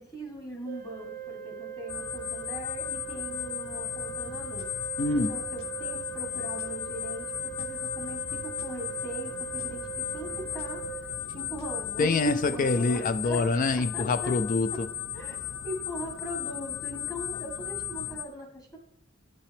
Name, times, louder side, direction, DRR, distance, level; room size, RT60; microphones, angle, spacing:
voice 1, 0.0-4.7 5.1-11.0 11.3-13.4 13.9-14.3 15.1-18.8, right 1 dB, 20° left, 1.5 m, -40 dB
Organ, 0.7-11.7, right 9 dB, 45° right, 0.5 m, -41 dB
sound 1, 1.9-18.2, left 10 dB, 90° left, 0.7 m, -36 dB
sound 2, 4.1-12.1, left 2 dB, 70° left, 1.1 m, -53 dB
voice 2, 5.0-5.4 12.0-14.9, left 3 dB, 40° left, 0.4 m, -26 dB
8.7 x 5.4 x 3.4 m
head